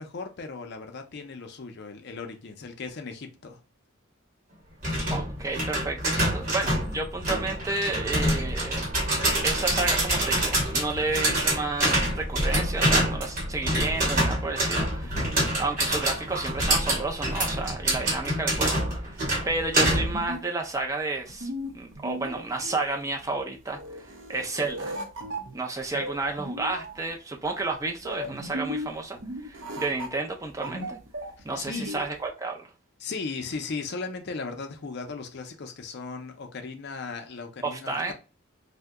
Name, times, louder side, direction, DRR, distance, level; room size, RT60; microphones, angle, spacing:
voice 1, 0.0-3.6 15.0-15.3 31.4-32.1 33.0-38.1, left 4 dB, 50° left, 0.5 m, -37 dB
sound 1, 4.8-20.3, right 1 dB, 40° right, 1.0 m, -26 dB
voice 2, 5.1-8.9 9.4-15.3 15.6-18.8 19.1-25.0 25.5-31.0 31.4-32.7 37.6-38.1, right 3 dB, 15° right, 0.4 m, -31 dB
sound 2, 19.9-32.3, equal, 60° right, 0.6 m, -37 dB
2.7 x 2.1 x 3.5 m
head